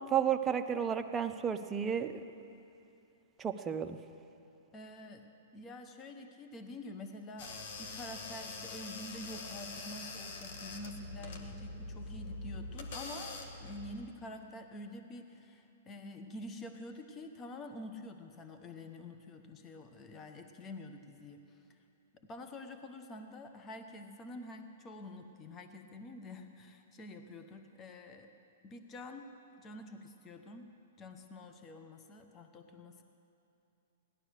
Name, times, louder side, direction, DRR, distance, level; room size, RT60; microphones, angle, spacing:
voice 1, 0.1-2.1 3.4-4.0, right 8 dB, 20° right, 7 dB, 0.7 m, -32 dB
voice 2, 4.7-5.3 5.5-21.6 22.2-28.3 28.6-29.3 29.6-33.0, left 1 dB, 25° left, 6 dB, 1.0 m, -47 dB
sound 1, 7.4-14.1, left 3 dB, 55° left, 1.7 m, -44 dB
17.0 x 11.5 x 6.6 m, 2.7 s
hypercardioid pair, 135°, 0 cm